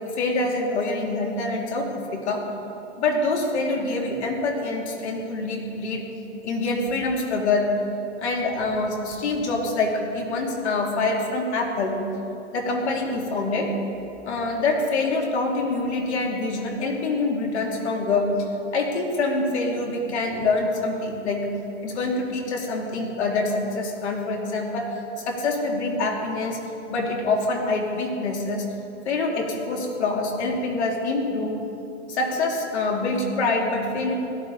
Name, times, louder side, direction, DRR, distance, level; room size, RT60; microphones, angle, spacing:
voice 1, 0.0-2.4 3.0-6.0 6.4-7.6 8.2-12.0 12.5-13.7 14.2-18.3 18.7-21.4 21.8-24.9 25.2-26.6 26.9-28.6 29.0-31.6 32.1-34.1, left 3 dB, 65° left, 0 dB, 2.9 m, -25 dB
17.0 x 12.5 x 4.1 m, 2.8 s
hypercardioid pair, 160°, 36 cm